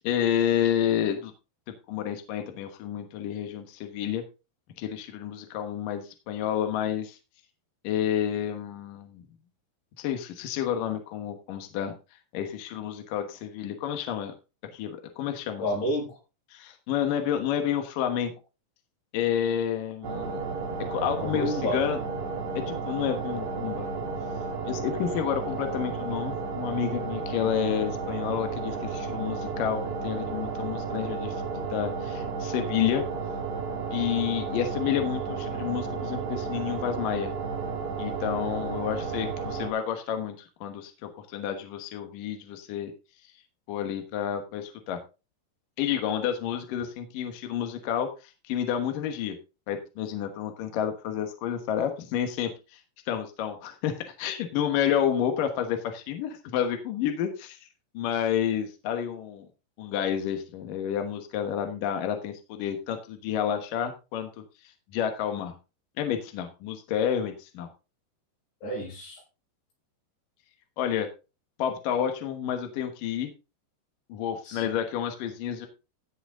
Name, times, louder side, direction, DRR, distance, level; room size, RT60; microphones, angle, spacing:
voice 1, 0.0-1.3 1.9-4.2 4.8-7.2 7.8-9.2 10.0-11.9 12.3-14.4 14.7-15.7 16.5-18.3 19.1-20.4 20.9-22.0 22.7-23.9 24.6-33.0 33.9-37.3 38.0-42.9 43.7-45.0 45.8-49.4 49.7-52.8 53.1-57.6 57.9-59.5 59.8-65.5 66.0-67.7 70.8-71.1 71.6-73.3 74.1-75.7, left 9 dB, 65° left, 6 dB, 2.5 m, -30 dB
voice 2, 15.6-16.2 21.2-21.8 68.6-69.2 74.5-74.7, left 1 dB, 80° left, -3 dB, 9.3 m, -30 dB
sound 1, 20.0-39.7, right 5 dB, 80° right, 4.2 m, -33 dB
16.0 x 6.0 x 3.8 m, 0.30 s
omnidirectional pair, 4.9 m